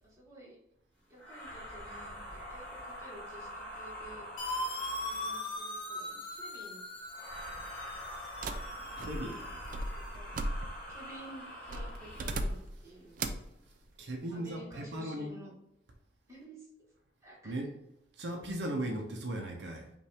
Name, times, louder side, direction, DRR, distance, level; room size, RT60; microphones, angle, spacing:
voice 1, 0.0-0.6 1.1-4.3 5.0-6.8 9.3-9.4 9.9-10.3 10.9-13.3 14.3-15.5 16.3-16.7 17.2-17.5, right 1 dB, 15° right, -6 dB, 1.5 m, -52 dB
sound 1, 1.2-5.7 7.1-12.6, equal, 10° left, 1.4 m, -45 dB
sound 2, 4.4-10.2, left 1 dB, 30° left, 0.8 m, -40 dB
sound 3, 8.4-11.0 11.7-12.8 13.2-13.5, right 1 dB, 45° right, 0.4 m, -37 dB
voice 2, 9.0-9.4 12.7-12.8 13.7-15.3 17.4-17.8 18.1-19.9, right 1 dB, 75° right, 2 dB, 0.7 m, -38 dB
5.4 x 2.6 x 3.4 m, 0.85 s
head